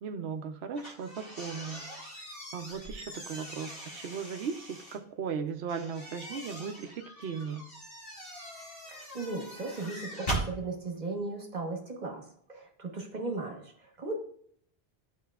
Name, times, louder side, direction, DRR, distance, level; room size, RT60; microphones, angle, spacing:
voice 1, 0.0-1.9 2.5-7.7, right 6 dB, 90° right, 8 dB, 0.9 m, -37 dB
sound 1, 0.7-5.0 5.7-10.5, right 1 dB, 65° left, 2.0 m, -41 dB
voice 2, 8.9-14.1, right 3 dB, 45° right, 1 dB, 1.3 m, -37 dB
12.0 x 4.2 x 2.3 m, 0.63 s
omnidirectional pair, 1.0 m